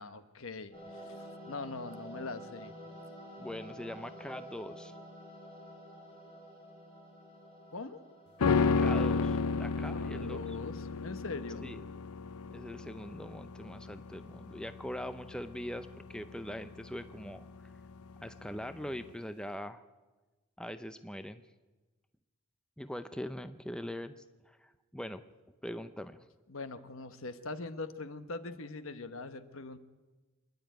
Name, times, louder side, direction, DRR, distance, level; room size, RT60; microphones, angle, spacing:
voice 1, 0.0-2.7 7.7-8.0 9.8-11.6 26.5-29.8, left 3 dB, 65° left, 11 dB, 1.2 m, -42 dB
sound 1, 0.7-8.6, equal, 25° left, 7.4 m, -49 dB
voice 2, 3.4-4.9 8.8-10.6 11.6-11.8 12.5-17.5 18.2-19.8 20.6-21.4 22.8-25.2 25.6-26.3, equal, 5° left, 10 dB, 0.5 m, -42 dB
sound 2, 8.4-17.8 18.1-18.2, left 4 dB, 90° left, 0.6 m, -32 dB
26.5 x 11.0 x 9.2 m, 1.2 s
head